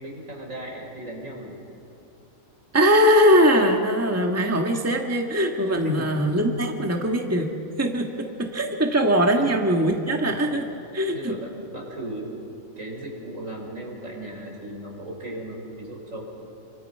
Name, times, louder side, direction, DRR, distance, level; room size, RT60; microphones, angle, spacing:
voice 1, 0.0-1.6 5.8-6.1 9.3-9.5 10.3-10.4 11.1-12.3 12.8-16.5, right 1 dB, 70° right, -1 dB, 5.7 m, -36 dB
voice 2, 2.7-7.5 7.8-10.7 10.9-11.3, equal, 10° right, 2 dB, 1.5 m, -21 dB
29.0 x 25.0 x 5.6 m, 2.6 s
omnidirectional pair, 1.4 m